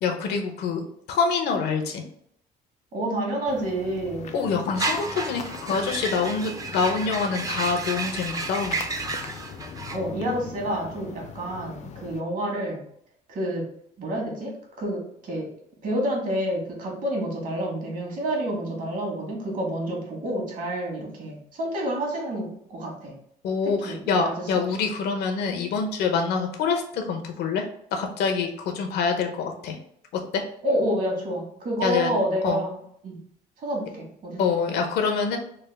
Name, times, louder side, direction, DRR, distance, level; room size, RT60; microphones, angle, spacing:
voice 1, 0.0-2.0 4.3-8.8 23.4-27.6 27.9-29.8 30.3-30.4 31.8-32.1 32.4-32.6 34.4-35.4, left 5 dB, 75° left, 4 dB, 0.7 m, -26 dB
voice 2, 2.9-4.3 9.9-12.8 13.3-13.6 14.0-14.5 14.8-15.5 15.8-23.1 23.8-24.4 30.6-32.8 33.0-33.2 33.6-34.7, right 1 dB, 55° right, -1 dB, 1.3 m, -29 dB
sound 1, 3.5-12.2, left 6 dB, 45° left, 0.4 m, -40 dB
sound 2, 4.7-10.0, right 3 dB, 20° right, 0.4 m, -31 dB
3.4 x 2.1 x 3.3 m, 0.70 s
cardioid pair, 110°, 17 cm